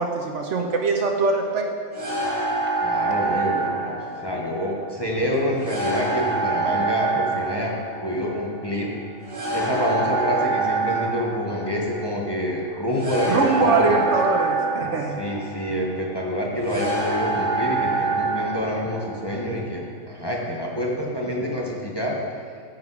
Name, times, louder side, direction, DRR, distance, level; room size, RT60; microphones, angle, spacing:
voice 1, 0.0-1.7 13.3-15.2, right 3 dB, 65° right, 2 dB, 1.2 m, -22 dB
sound 1, 1.9-19.6, right 3 dB, 35° right, 1.9 m, -27 dB
voice 2, 2.8-7.8 8.0-8.9 9.5-13.9 15.2-22.2, equal, 20° left, -3 dB, 1.1 m, -27 dB
14.5 x 5.2 x 4.8 m, 2.3 s
omnidirectional pair, 1.4 m